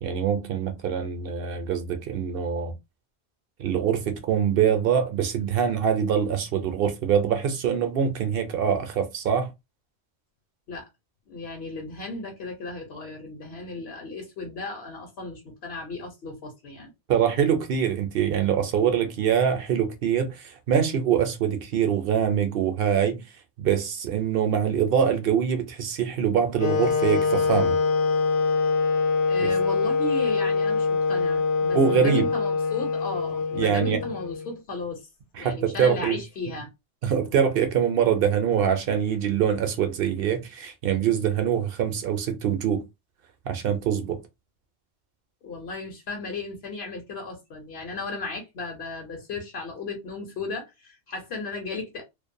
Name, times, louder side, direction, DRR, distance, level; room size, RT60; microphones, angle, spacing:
voice 1, 0.0-2.7 3.6-9.5 17.1-23.2 23.6-27.8 29.4-29.5 31.7-32.3 33.5-34.0 35.3-36.2 37.0-42.9 43.5-44.2, right 8 dB, 60° right, 0.8 m, -24 dB
voice 2, 11.3-16.9 29.3-35.0 35.4-36.7 45.4-52.0, left 3 dB, 65° left, 1.1 m, -35 dB
Wind instrument woodwind instrument, 26.6-34.6, left 4 dB, 90° left, 0.9 m, -24 dB
2.5 x 2.2 x 2.6 m
omnidirectional pair, 1.1 m